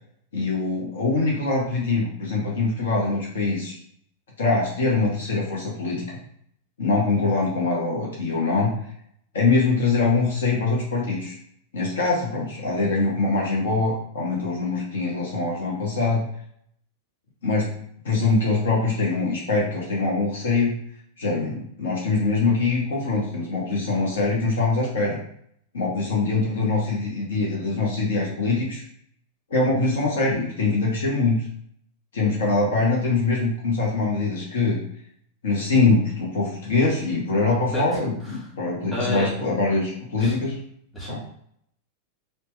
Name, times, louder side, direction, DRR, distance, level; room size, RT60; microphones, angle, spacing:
voice 1, 0.3-3.8 4.4-6.1 6.8-8.7 9.3-11.4 11.7-16.3 17.4-17.7 18.0-20.7 21.2-25.2 25.7-28.8 29.5-31.4 32.1-34.8 35.4-40.6 41.1-41.2, left 3 dB, 60° left, -3 dB, 0.6 m, -23 dB
voice 2, 37.7-38.5 38.9-39.3 40.2-40.3 40.9-41.2, left 1 dB, 10° left, -7 dB, 1.3 m, -31 dB
2.8 x 2.0 x 3.1 m, 0.68 s
figure-of-eight pair, 90°, 0 cm